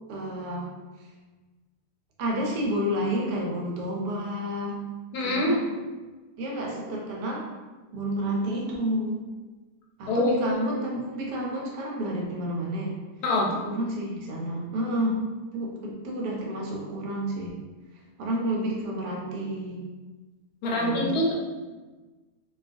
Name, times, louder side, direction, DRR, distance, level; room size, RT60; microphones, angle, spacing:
voice 1, 0.1-0.7 1.0-1.1 2.2-4.8 5.2-5.7 6.4-7.5 7.9-9.2 10.0-12.9 13.5-15.2 15.5-17.5 18.2-19.9 20.7-21.2, equal, 80° right, -2 dB, 1.2 m, -30 dB
voice 2, 5.1-5.6 10.1-11.0 13.2-13.5 20.6-21.3, left 1 dB, 75° left, -2 dB, 1.1 m, -25 dB
2.8 x 2.3 x 2.5 m, 1.3 s
omnidirectional pair, 1.8 m